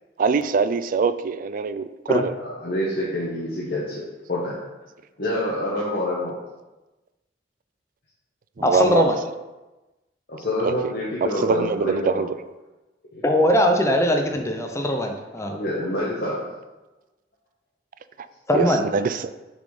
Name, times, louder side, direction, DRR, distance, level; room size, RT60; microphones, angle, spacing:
voice 1, 0.2-2.3 8.6-9.1 10.6-10.7 11.2-12.3 18.5-18.7 18.9-19.3, right 5 dB, 50° right, 13 dB, 0.3 m, -23 dB
voice 2, 2.4-4.0 4.3-4.6 5.2-6.3 10.3-12.3 13.1-13.2 15.5-16.4, left 1 dB, 60° left, -6 dB, 1.2 m, -27 dB
voice 3, 8.6-9.2 13.2-15.5 18.5-18.8, equal, 15° left, 4 dB, 0.6 m, -20 dB
6.6 x 4.2 x 4.9 m, 1.1 s
head